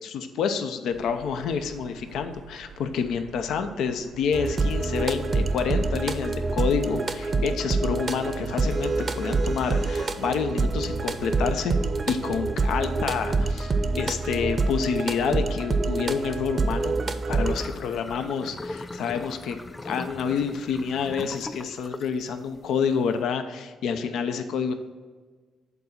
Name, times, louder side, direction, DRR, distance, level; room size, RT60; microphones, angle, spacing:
voice 1, 0.0-11.8 12.1-17.0 17.3-19.6 19.8-24.7, left 6 dB, 80° left, 8 dB, 0.7 m, -28 dB
sound 1, 0.9-6.0, right 4 dB, 80° right, 1.0 m, -47 dB
sound 2, 4.3-17.7, right 3 dB, 40° right, 0.6 m, -26 dB
sound 3, 17.4-23.2, left 2 dB, 20° left, 0.3 m, -39 dB
8.3 x 4.0 x 5.7 m, 1.4 s
cardioid pair, 90°, 0 cm